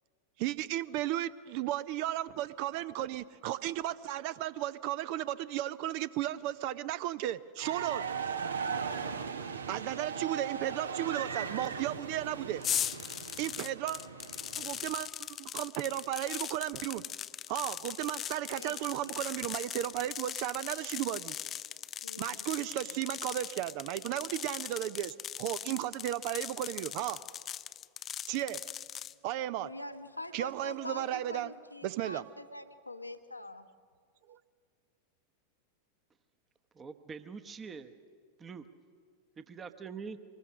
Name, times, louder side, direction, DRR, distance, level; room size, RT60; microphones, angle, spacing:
voice 1, 0.4-8.3 9.7-12.6 13.4-14.0 14.6-15.1 15.4-17.1 17.5-21.4 22.2-27.2 28.3-28.9 29.2-29.8 30.3-31.5 31.8-32.2 34.3-34.4, right 13 dB, 45° right, 17 dB, 0.5 m, -35 dB
sound 1, 7.6-14.9, right 6 dB, 70° right, 1.1 m, -38 dB
sound 2, 12.6-29.1, left 9 dB, 25° left, 0.5 m, -40 dB
voice 2, 18.5-19.2 22.0-22.8 29.6-33.7, left 1 dB, 85° left, 9 dB, 1.0 m, -45 dB
voice 3, 36.7-37.9 38.4-38.6 39.5-40.2, right 5 dB, 20° right, 10 dB, 1.0 m, -44 dB
24.0 x 20.5 x 6.3 m, 2.1 s
figure-of-eight pair, 90°, 0 cm